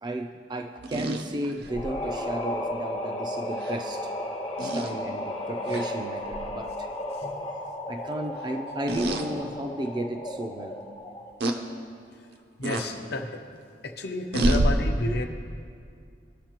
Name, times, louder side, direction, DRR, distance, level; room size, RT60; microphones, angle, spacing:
voice 1, 0.0-4.1 4.6-6.9 7.9-10.8, right 1 dB, 25° right, 5 dB, 0.4 m, -34 dB
sound 1, 0.8-1.9 3.6-3.8 4.6-4.9 5.7-5.9 6.3-6.5 8.9-9.3 9.9-10.0 11.4-11.6 12.6-12.9 14.3-14.7, right 1 dB, 65° right, 0.7 m, -26 dB
sound 2, 1.7-11.4, left 1 dB, 30° left, 0.8 m, -34 dB
voice 2, 12.6-13.4 13.8-15.2, left 2 dB, 65° left, 4 dB, 0.8 m, -31 dB
17.0 x 6.5 x 2.9 m, 2.3 s
head